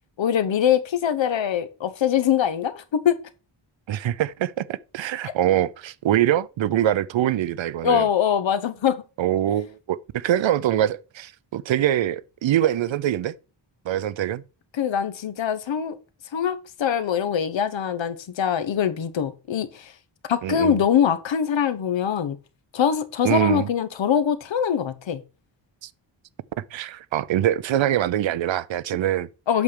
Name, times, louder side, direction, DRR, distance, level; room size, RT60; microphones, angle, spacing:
voice 1, 0.2-3.2 7.8-9.0 14.7-16.0 16.3-19.9 20.3-22.4 22.7-25.2 29.5-29.6, left 8 dB, 70° left, 1.0 m, -23 dB
voice 2, 3.9-8.1 9.2-13.3 13.9-14.4 20.4-20.8 23.2-23.7 25.8-25.9 26.6-29.3, right 12 dB, 75° right, 0.6 m, -24 dB
8.3 x 3.4 x 6.6 m
wide cardioid pair, 145°, 47 cm